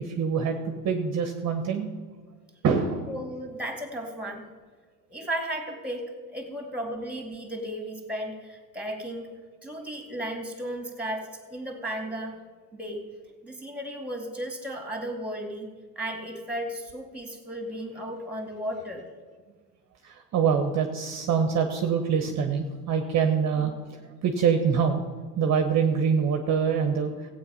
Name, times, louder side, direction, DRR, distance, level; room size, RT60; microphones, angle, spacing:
voice 1, 0.0-1.9 2.6-3.1 20.0-23.7 24.2-25.0 25.4-27.1, right 6 dB, 35° right, 5 dB, 1.2 m, -25 dB
voice 2, 3.1-4.4 5.1-6.0 6.3-9.3 9.6-12.4 12.7-13.0 13.4-15.7 16.0-19.1, right 1 dB, 5° right, 3 dB, 2.5 m, -34 dB
14.5 x 8.6 x 5.6 m, 1.5 s
supercardioid pair, 100°, 46 cm